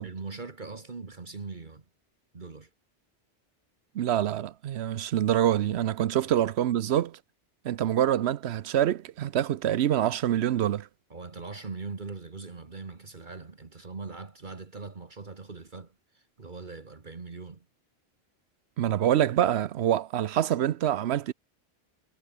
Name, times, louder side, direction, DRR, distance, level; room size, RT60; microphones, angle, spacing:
voice 1, 0.0-1.8 2.3-2.7 11.1-17.7, right 4 dB, 50° right, 1.7 m, -41 dB
voice 2, 3.9-7.2 7.6-10.9 18.8-21.3, right 11 dB, 85° right, 0.9 m, -26 dB
omnidirectional pair, 1.1 m